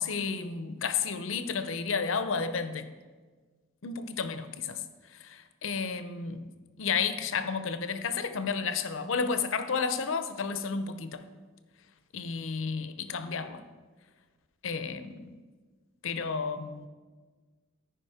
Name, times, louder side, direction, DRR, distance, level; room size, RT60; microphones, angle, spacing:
voice 1, 0.0-2.9 3.8-4.8 5.2-6.5 6.8-11.3 12.1-13.6 14.6-15.4 16.0-16.9, left 5 dB, 80° left, 0.6 m, -32 dB
13.5 x 5.0 x 4.9 m
head